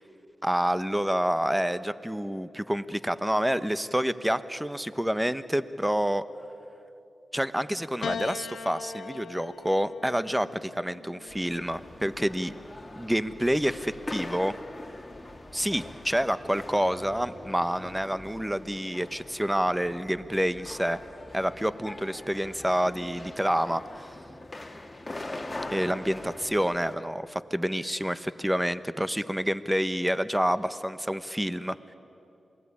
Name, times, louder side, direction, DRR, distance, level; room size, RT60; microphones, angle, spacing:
voice 1, 0.4-6.3 7.3-12.5 13.0-14.6 15.5-21.0 21.3-24.1 25.7-31.8, equal, 5° right, 13 dB, 1.1 m, -28 dB
Piano, 8.0-12.5 13.5-14.3, left 5 dB, 80° left, 0.9 m, -40 dB
sound 1, 11.3-26.9, left 2 dB, 25° left, 2.5 m, -42 dB
27.5 x 19.5 x 10.0 m, 2.7 s
cardioid pair, 50°, 0 cm